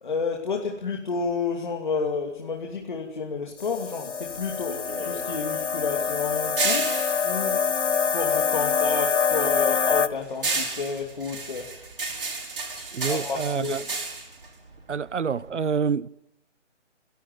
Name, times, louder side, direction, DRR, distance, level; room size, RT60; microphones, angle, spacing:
voice 1, 0.0-4.8 5.0-7.6 7.9-11.7 13.1-13.7, left 5 dB, 40° left, 2.7 m, -30 dB
sound 1, 3.6-10.1, left 6 dB, 75° left, 1.4 m, -25 dB
sound 2, 4.2-8.7 9.0-15.5, right 3 dB, 45° right, 5.2 m, -32 dB
voice 2, 12.9-13.8 14.9-16.1, right 6 dB, 75° right, 0.9 m, -27 dB
29.5 x 11.5 x 9.2 m
hypercardioid pair, 180°, 36 cm